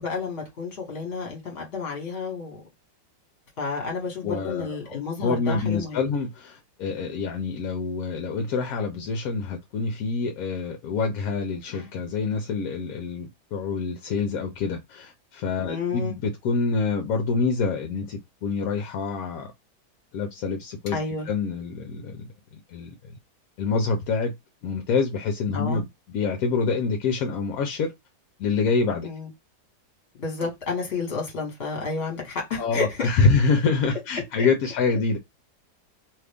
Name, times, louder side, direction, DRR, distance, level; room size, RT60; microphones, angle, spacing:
voice 1, 0.0-2.6 3.6-6.0 15.6-16.1 20.9-21.3 25.5-25.8 29.0-29.3 30.2-33.1 34.4-34.5, left 4 dB, 40° left, 1.4 m, -31 dB
voice 2, 4.2-19.5 20.1-22.2 22.5-23.2 23.6-24.3 24.6-27.9 28.4-29.1 32.6-35.2, left 4 dB, 65° left, 0.9 m, -26 dB
2.9 x 2.4 x 3.4 m
omnidirectional pair, 1.8 m